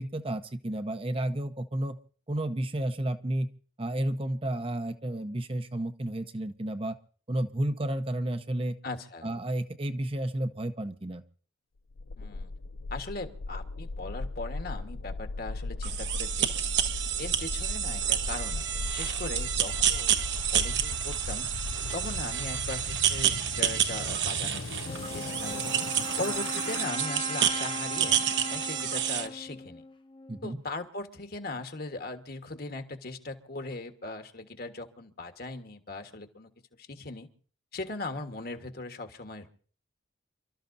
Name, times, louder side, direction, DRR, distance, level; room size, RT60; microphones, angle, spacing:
voice 1, 0.0-2.0 2.3-3.5 3.8-7.0 7.3-8.8 9.2-11.2 30.3-30.6, right 1 dB, 30° right, 8 dB, 0.8 m, -31 dB
voice 2, 8.8-9.3 12.2-12.5 12.9-16.5 17.2-21.5 21.9-24.7 25.1-25.8 26.2-29.8 30.4-36.5 36.8-37.3 37.7-39.5, left 2 dB, 50° left, 7 dB, 1.5 m, -39 dB
sound 1, 11.9-26.9, left 3 dB, 80° left, 0.6 m, -38 dB
sound 2, 15.8-29.3, right 10 dB, 60° right, 1.2 m, -29 dB
Wind instrument woodwind instrument, 24.8-30.6, left 2 dB, 25° left, 0.8 m, -39 dB
28.5 x 13.0 x 2.7 m, 0.43 s
head